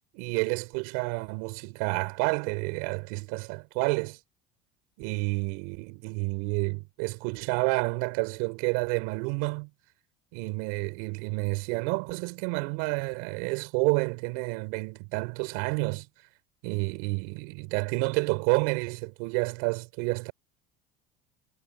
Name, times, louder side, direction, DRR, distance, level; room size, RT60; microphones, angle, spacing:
voice 1, 0.1-4.2 5.0-9.7 10.3-16.1 16.6-20.3, right 31 dB, 75° right, 6.3 m, -29 dB
cardioid pair, 165°, 17 cm